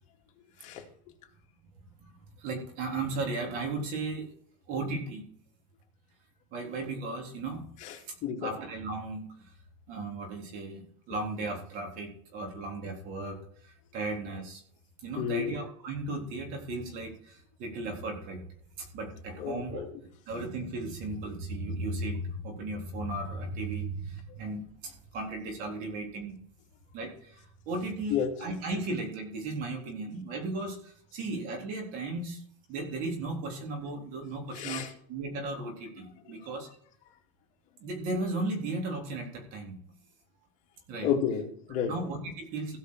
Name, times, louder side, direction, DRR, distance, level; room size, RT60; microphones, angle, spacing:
voice 1, 2.4-4.3 4.7-5.2 6.5-7.6 8.3-9.5 9.9-14.6 15.0-18.4 18.8-19.8 20.3-26.4 26.9-32.4 32.7-36.7 37.8-39.8 40.9-41.1 41.9-42.8, right 2 dB, 50° right, 2 dB, 3.7 m, -36 dB
voice 2, 7.8-8.6 15.2-15.5 19.3-20.0 28.1-28.3 34.5-34.9 41.0-42.1, left 8 dB, 45° left, 1 dB, 2.5 m, -31 dB
17.0 x 5.8 x 4.8 m, 0.63 s
supercardioid pair, 145°, 18 cm